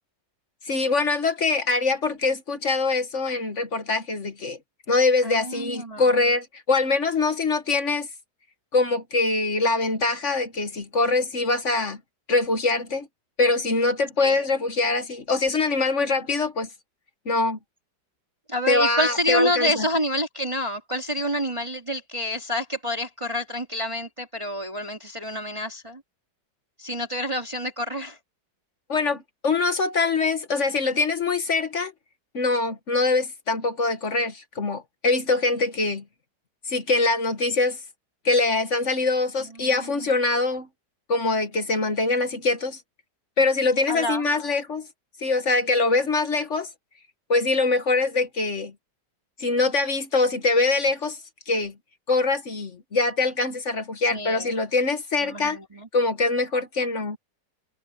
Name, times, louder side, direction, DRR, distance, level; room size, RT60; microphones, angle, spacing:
voice 1, 0.6-4.6 4.9-8.1 8.7-12.0 12.3-13.1 13.4-16.7 17.2-17.6 18.7-19.8 28.9-31.9 32.3-36.0 36.6-37.8 38.2-40.7 41.1-42.8 43.4-44.9 45.2-46.7 47.3-48.7 49.4-51.2 51.5-51.7 52.1-55.6 55.9-57.2, left 3 dB, 45° left, 1.5 m, -23 dB
voice 2, 5.2-6.0 14.2-14.5 18.5-26.0 26.8-28.2 39.6-40.1 43.9-44.3 54.1-54.5 55.2-55.9, equal, 15° right, 3.0 m, -28 dB
omnidirectional pair, 1.9 m